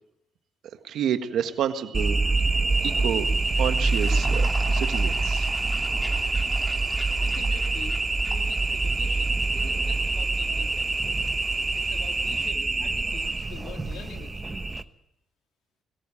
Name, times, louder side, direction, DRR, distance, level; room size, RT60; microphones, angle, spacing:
voice 1, 0.8-2.2 2.5-3.3 3.6-4.5 4.7-5.5, right 9 dB, 75° right, 8 dB, 1.6 m, -29 dB
sound 1, 1.9-14.8, right 3 dB, 20° right, 1.1 m, -25 dB
sound 2, 2.7-12.5, left 1 dB, 10° left, 2.9 m, -43 dB
voice 2, 7.2-11.3 11.7-14.8, left 6 dB, 85° left, 4 dB, 3.0 m, -45 dB
22.5 x 14.5 x 8.7 m, 0.81 s
cardioid pair, 90°, 0 cm